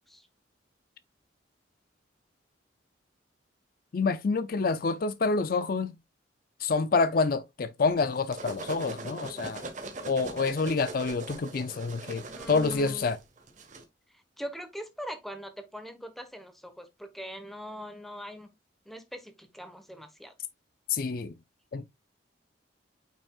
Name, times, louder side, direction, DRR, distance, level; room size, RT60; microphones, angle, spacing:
voice 1, 3.9-5.9 6.6-9.6 10.0-13.2 20.9-21.3 21.7-21.9, left 4 dB, 50° left, 0.4 m, -27 dB
sound 1, 8.0-13.8, right 3 dB, 40° right, 1.4 m, -41 dB
voice 2, 12.3-13.1 14.4-18.5 18.9-20.3, equal, ahead, 1.2 m, -41 dB
8.9 x 5.3 x 2.4 m
head